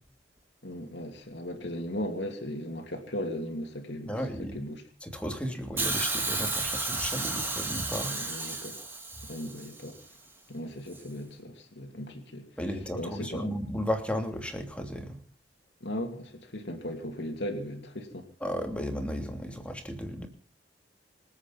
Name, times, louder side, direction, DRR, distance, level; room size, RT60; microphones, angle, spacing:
voice 1, 0.6-4.1 4.4-4.8 8.1-8.7 9.2-10.0 10.5-12.5 12.9-13.5 15.8-18.3, equal, 65° left, 2.7 m, -37 dB
voice 2, 4.0-4.6 5.0-8.1 12.6-15.2 18.4-20.3, equal, 5° left, 3.0 m, -34 dB
Hiss, 5.8-9.9 10.9-11.0, right 3 dB, 10° right, 2.7 m, -32 dB
26.0 x 8.8 x 5.9 m
head